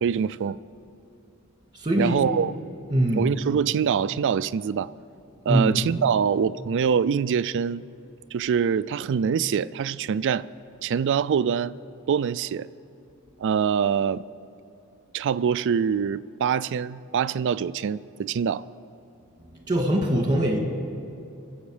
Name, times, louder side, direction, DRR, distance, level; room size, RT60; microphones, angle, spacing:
voice 1, 0.0-0.6 2.0-2.5 3.1-4.9 5.5-7.9 8.3-10.5 10.8-11.7 12.1-12.7 13.4-14.2 15.1-18.7, right 7 dB, 55° right, 16 dB, 0.3 m, -24 dB
voice 2, 1.7-2.2 2.9-3.2 5.5-5.7 19.5-20.6, right 1 dB, 20° right, 1 dB, 2.1 m, -23 dB
23.0 x 7.9 x 4.9 m, 2.9 s
head